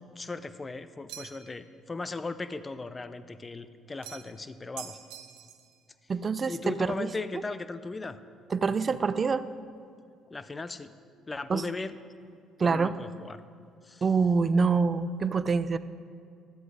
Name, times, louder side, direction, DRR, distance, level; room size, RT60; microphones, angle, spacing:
voice 1, 0.2-5.0 6.4-8.2 10.3-10.9 11.3-11.9 12.6-13.4 13.8-14.1, left 3 dB, 25° left, 12 dB, 0.6 m, -37 dB
sound 1, 1.1-1.6 4.0-4.4 4.8-5.7, right 11 dB, 85° right, 0.6 m, -45 dB
voice 2, 6.1-7.1 8.5-9.5 11.5-11.6 12.6-12.9 14.0-15.8, right 4 dB, 35° right, 14 dB, 0.4 m, -26 dB
11.5 x 7.8 x 4.9 m, 2.4 s
supercardioid pair, 70°, 0 cm